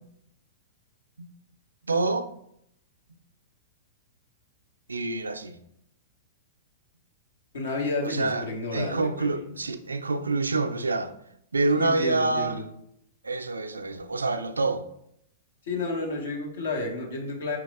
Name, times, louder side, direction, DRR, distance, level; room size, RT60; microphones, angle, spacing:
voice 1, 1.9-2.3 4.9-5.6 8.0-8.4 8.7-11.1 11.5-12.6 13.2-14.8, right 3 dB, 90° right, 0.3 m, -27 dB
voice 2, 7.5-9.4 11.7-12.6 15.6-17.6, left 3 dB, 75° left, 1.1 m, -31 dB
5.1 x 3.2 x 2.3 m
hypercardioid pair, 110°, 0 cm